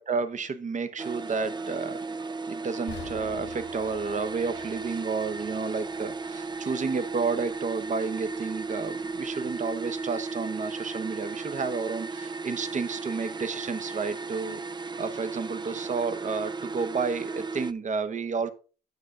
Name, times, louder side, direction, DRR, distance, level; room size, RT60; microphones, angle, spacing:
voice 1, 0.0-2.0 2.5-14.6 15.0-18.5, right 5 dB, 40° right, 12 dB, 1.0 m, -31 dB
sound 1, 1.0-17.7, right 4 dB, 25° right, 0.5 m, -35 dB
sound 2, 2.9-6.9 7.3-7.5 8.0-8.1, left 8 dB, 70° left, 1.8 m, -48 dB
9.4 x 6.5 x 3.7 m, 0.36 s
cardioid pair, 75°, 19 cm